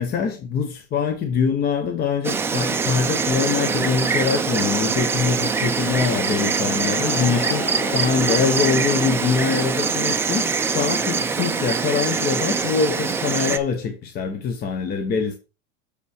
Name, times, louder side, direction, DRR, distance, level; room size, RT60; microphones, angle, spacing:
voice 1, 0.0-7.6 7.9-15.4, left 6 dB, 30° left, 0.9 m, -24 dB
Insect, 2.2-13.6, right 5 dB, 5° right, 0.4 m, -23 dB
Singing, 5.2-11.1, left 3 dB, 55° left, 4.3 m, -43 dB
sound 1, 7.0-12.2, left 10 dB, 80° left, 1.2 m, -38 dB
6.6 x 5.4 x 4.9 m
supercardioid pair, 140°, 33 cm